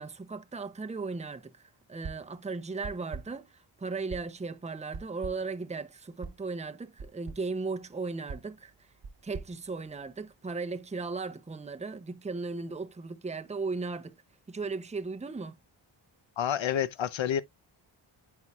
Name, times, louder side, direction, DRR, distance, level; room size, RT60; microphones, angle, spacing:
voice 1, 0.0-8.9 9.2-14.2 14.5-15.6, right 4 dB, 15° right, 0.7 m, -37 dB
sound 1, 2.0-2.4 2.8-3.5 4.1-4.5 4.9-5.6 6.2-6.5 7.0-7.5 8.3-10.4, right 4 dB, 55° right, 1.1 m, -44 dB
voice 2, 16.4-17.4, left 9 dB, 70° left, 0.8 m, -28 dB
9.4 x 4.7 x 2.3 m
cardioid pair, 55°, 48 cm